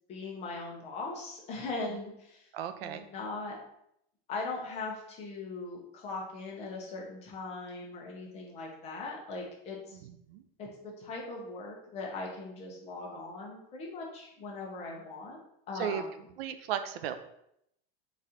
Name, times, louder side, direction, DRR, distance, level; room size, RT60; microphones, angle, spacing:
voice 1, 0.1-2.5 2.8-3.6 4.3-10.0 10.6-16.1, left 3 dB, 20° left, -1 dB, 0.7 m, -40 dB
voice 2, 2.5-3.0 9.9-10.4 15.7-16.0 16.4-17.2, right 9 dB, 90° right, 9 dB, 0.5 m, -35 dB
4.0 x 2.5 x 4.2 m, 0.76 s
supercardioid pair, 175°, 29 cm